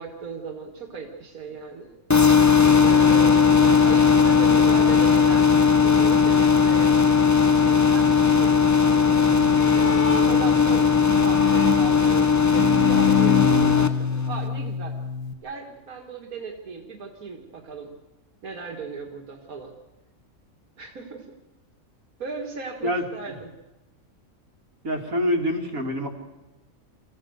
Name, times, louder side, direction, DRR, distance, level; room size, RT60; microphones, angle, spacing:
voice 1, 0.0-2.0 2.8-7.0 7.4-10.9 11.2-15.0 15.4-17.9 18.4-19.7 20.8-21.3 22.2-23.5, right 4 dB, 90° right, 2 dB, 2.2 m, -37 dB
sound 1, 2.1-13.9, left 6 dB, 20° left, 0.5 m, -18 dB
Bowed string instrument, 9.2-15.3, left 6 dB, 90° left, 1.9 m, -26 dB
voice 2, 24.8-26.1, equal, 70° right, 1 dB, 3.0 m, -25 dB
25.0 x 15.5 x 8.0 m, 1.1 s
omnidirectional pair, 1.5 m